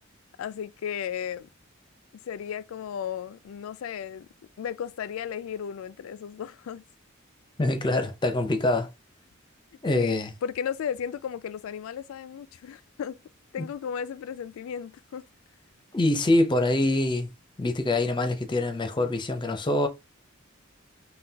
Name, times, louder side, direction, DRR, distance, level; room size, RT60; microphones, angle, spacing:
voice 1, 0.4-1.5 2.3-4.3 4.6-6.8 9.9-13.2 13.5-15.3, left 8 dB, 85° left, 0.3 m, -34 dB
voice 2, 7.6-8.9 9.8-10.3 15.9-17.3 17.6-19.9, left 2 dB, 25° left, 0.6 m, -24 dB
5.6 x 2.2 x 2.7 m
head